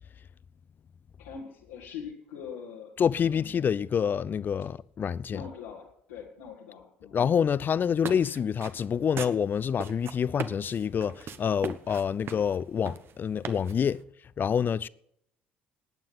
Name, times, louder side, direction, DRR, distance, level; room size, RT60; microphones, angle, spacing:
voice 1, 1.2-2.9 5.3-7.2, left 7 dB, 80° left, 2.0 m, -42 dB
voice 2, 3.0-5.4 7.1-14.0 14.4-14.9, left 7 dB, 40° left, 0.5 m, -27 dB
sound 1, 7.8-14.0, right 7 dB, 50° right, 1.1 m, -40 dB
19.0 x 9.0 x 5.5 m
hypercardioid pair, 55°, 5 cm